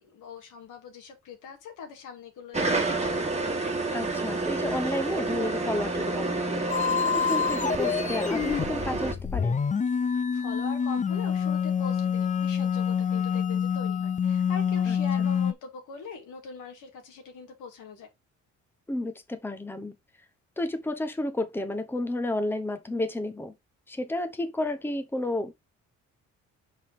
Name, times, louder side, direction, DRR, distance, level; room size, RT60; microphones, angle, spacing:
voice 1, 0.0-3.2 10.1-18.1, left 5 dB, 85° left, 2.2 m, -42 dB
sound 1, 2.5-9.1, right 2 dB, 20° right, 1.7 m, -29 dB
voice 2, 3.9-6.6 7.0-9.6 14.9-15.3 18.9-19.9 20.6-23.5 23.9-25.5, left 1 dB, 5° left, 0.9 m, -31 dB
sound 2, 6.7-15.5, left 7 dB, 25° left, 0.5 m, -27 dB
5.5 x 4.7 x 3.7 m
cardioid pair, 90°, 30 cm